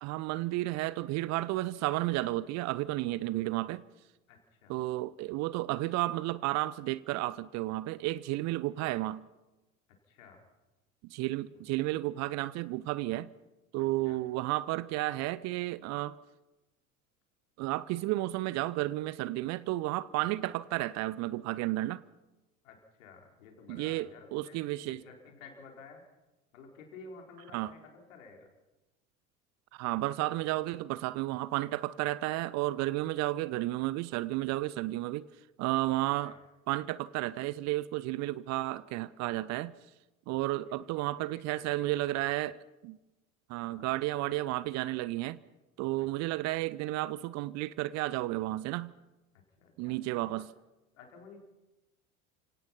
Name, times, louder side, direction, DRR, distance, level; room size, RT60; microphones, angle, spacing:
voice 1, 0.0-3.8 4.7-9.2 11.1-13.3 13.7-16.2 17.6-22.0 23.7-25.0 27.5-27.7 29.7-35.3 35.6-36.4 36.7-39.7 40.3-43.0 43.5-45.4 45.8-48.9 49.8-50.5, right 17 dB, 40° right, 0.7 m, -32 dB
voice 2, 4.3-4.7 10.1-10.4 11.5-11.6 13.8-14.2 22.6-26.0 26.5-28.5 36.2-36.4 40.7-42.0 43.6-43.9 46.0-46.4 49.3-50.0 50.9-51.4, left 4 dB, 60° left, 4.6 m, -53 dB
29.0 x 18.0 x 5.8 m
figure-of-eight pair, 70°, 43 cm